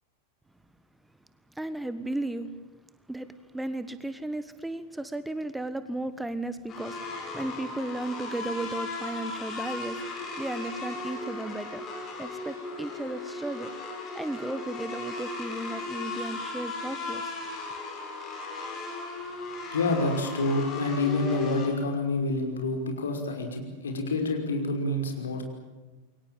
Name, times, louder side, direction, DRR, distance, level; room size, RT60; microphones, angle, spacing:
voice 1, 1.5-2.5 3.1-10.0 10.4-13.7 14.0-17.3, right 2 dB, 5° right, 12 dB, 1.4 m, -35 dB
sound 1, 6.7-21.7, left 3 dB, 25° left, 7.7 m, -37 dB
voice 2, 19.7-25.4, left 2 dB, 70° left, 3 dB, 5.5 m, -28 dB
28.5 x 23.5 x 7.6 m, 1.2 s
figure-of-eight pair, 90°, 0 cm